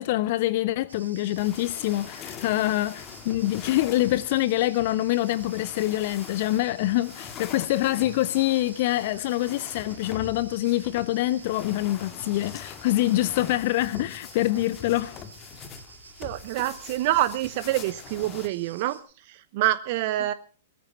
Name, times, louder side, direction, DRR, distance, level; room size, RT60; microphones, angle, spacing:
voice 1, 0.0-15.2, left 15 dB, 45° left, 0.8 m, -25 dB
Cricket, 0.9-19.0, right 5 dB, 70° right, 5.7 m, -49 dB
sound 1, 1.4-18.5, left 8 dB, 30° left, 2.2 m, -44 dB
voice 2, 16.2-20.3, right 14 dB, 45° right, 0.9 m, -27 dB
20.5 x 14.0 x 4.2 m
figure-of-eight pair, 110°, 0 cm